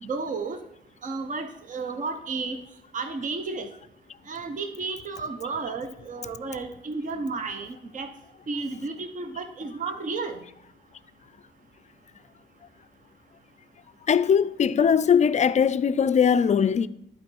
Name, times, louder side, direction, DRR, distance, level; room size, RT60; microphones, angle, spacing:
voice 1, 0.0-0.6 1.0-2.6 2.9-3.7 4.3-8.1 8.5-10.4, right 4 dB, 40° right, 0.9 m, -32 dB
voice 2, 14.1-16.9, left 7 dB, 35° left, 0.4 m, -20 dB
11.0 x 4.6 x 4.5 m
cardioid pair, 90°, 20 cm